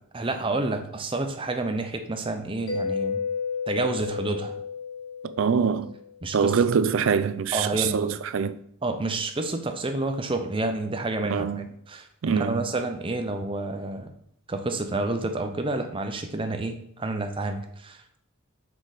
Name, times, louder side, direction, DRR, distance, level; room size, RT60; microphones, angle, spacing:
voice 1, 0.1-3.2 3.7-4.6 6.2-6.5 7.5-8.1 8.8-14.1 14.5-18.0, right 2 dB, 25° right, 0.6 m, -29 dB
Mallet percussion, 2.7-6.1, left 5 dB, 80° left, 1.5 m, -32 dB
voice 2, 5.4-5.9 6.3-8.6 11.3-11.7 12.2-12.7, right 6 dB, 65° right, 0.4 m, -24 dB
6.4 x 4.8 x 4.0 m
head